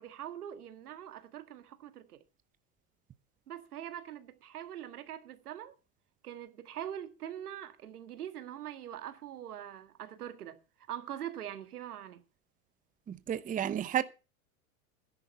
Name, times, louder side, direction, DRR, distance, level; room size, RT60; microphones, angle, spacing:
voice 1, 0.0-2.2 3.5-5.8 6.2-10.6 10.9-12.2, right 10 dB, 85° right, 1.8 m, -43 dB
voice 2, 13.1-14.0, right 10 dB, 20° right, 0.7 m, -31 dB
13.0 x 10.5 x 5.5 m
hypercardioid pair, 105°, 44 cm